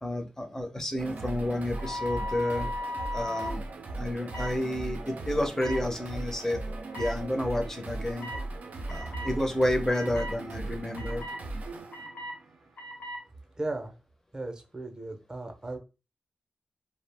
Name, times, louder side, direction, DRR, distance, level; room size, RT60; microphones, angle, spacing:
voice 1, 0.0-2.7 3.1-3.6 4.0-8.3 8.9-11.2, left 1 dB, 15° left, 4 dB, 0.6 m, -30 dB
sound 1, 1.0-13.0, right 2 dB, 80° right, 0.4 m, -38 dB
sound 2, 1.7-3.5 4.3-4.5 5.6-5.8 6.9-7.1 8.2-8.4 8.9-9.3 9.9-10.3 11.0-11.4 11.9-12.3 12.8-13.2, left 1 dB, 65° left, 0.8 m, -37 dB
voice 2, 13.6-13.9 14.3-15.8, right 2 dB, 30° right, 4 dB, 0.6 m, -36 dB
2.3 x 2.0 x 3.3 m, 0.30 s
wide cardioid pair, 80°, 3 cm